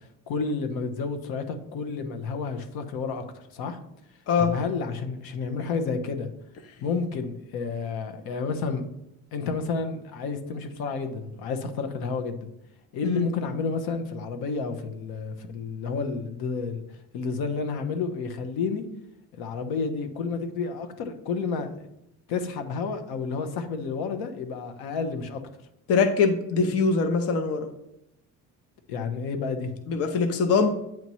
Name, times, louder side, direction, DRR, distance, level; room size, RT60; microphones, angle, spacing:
voice 1, 0.3-3.8 4.4-6.3 6.8-8.8 9.3-12.5 12.9-16.8 17.1-18.8 19.3-21.9 22.3-25.4 26.6-26.7 28.9-29.8, left 4 dB, 85° left, 7 dB, 1.1 m, -30 dB
voice 2, 25.9-27.7 29.9-30.7, left 5 dB, 40° left, 6 dB, 0.6 m, -22 dB
9.1 x 3.1 x 5.5 m, 0.82 s
cardioid pair, 175°, 36 cm